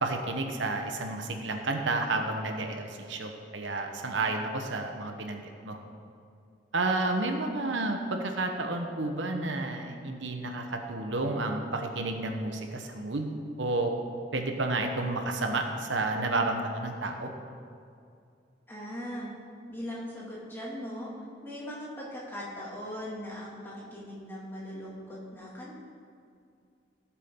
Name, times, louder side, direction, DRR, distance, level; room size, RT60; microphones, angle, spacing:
voice 1, 0.0-5.8 6.7-13.9 14.3-17.3, right 2 dB, 90° right, 4 dB, 1.1 m, -31 dB
voice 2, 18.7-19.3 19.7-21.1 21.4-25.8, equal, 10° left, -6 dB, 2.4 m, -39 dB
16.5 x 7.3 x 3.7 m, 2.4 s
head